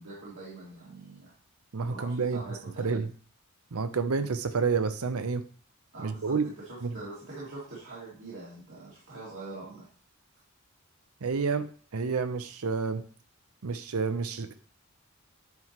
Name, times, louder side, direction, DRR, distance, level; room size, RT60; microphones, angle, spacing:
voice 1, 0.0-1.3 1.9-3.0 5.9-9.9, right 2 dB, 60° right, -7 dB, 2.4 m, -44 dB
voice 2, 1.7-3.1 3.7-5.4 6.0-6.4 6.8-7.0 11.2-11.7 11.9-13.0 13.6-14.5, right 5 dB, 85° right, 11 dB, 0.7 m, -29 dB
9.4 x 4.7 x 3.0 m, 0.42 s
head